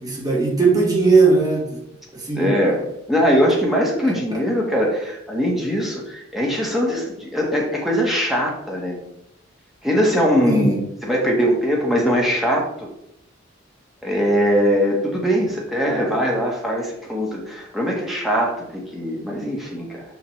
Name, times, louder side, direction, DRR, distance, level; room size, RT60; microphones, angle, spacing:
voice 1, 0.0-1.8 2.1-2.5 4.0-4.4 10.5-10.7, right 4 dB, 20° right, -2 dB, 1.6 m, -19 dB
voice 2, 2.3-9.0 9.8-10.8 11.0-12.9 14.0-20.0, equal, ahead, -2 dB, 1.4 m, -21 dB
6.2 x 5.5 x 3.2 m, 0.78 s
head